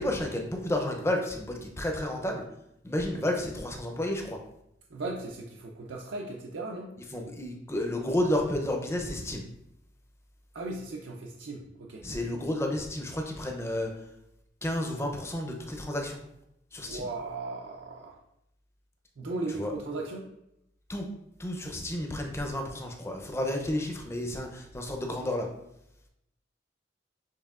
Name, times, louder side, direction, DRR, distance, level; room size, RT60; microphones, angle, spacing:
voice 1, 0.0-2.4 2.8-4.4 7.1-9.5 12.0-13.9 14.6-16.2 16.7-17.1 19.5-19.7 20.9-21.1 21.4-25.5, left 1 dB, 15° left, 2 dB, 0.5 m, -31 dB
voice 2, 4.9-6.9 10.5-12.1 16.8-18.2 19.2-20.3, right 2 dB, 75° right, -1 dB, 0.5 m, -37 dB
6.5 x 3.3 x 2.4 m, 0.81 s
head